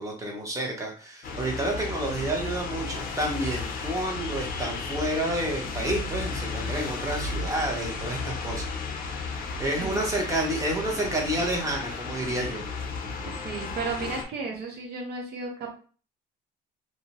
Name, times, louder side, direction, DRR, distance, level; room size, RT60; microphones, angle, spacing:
voice 1, 0.0-8.7 9.2-12.6, right 1 dB, 20° right, 0 dB, 0.9 m, -30 dB
sound 1, 1.2-14.2, left 4 dB, 60° left, 0.5 m, -34 dB
voice 2, 13.2-15.8, right 4 dB, 70° right, 0 dB, 0.9 m, -34 dB
2.5 x 2.1 x 2.9 m, 0.39 s
cardioid pair, 110°, 17 cm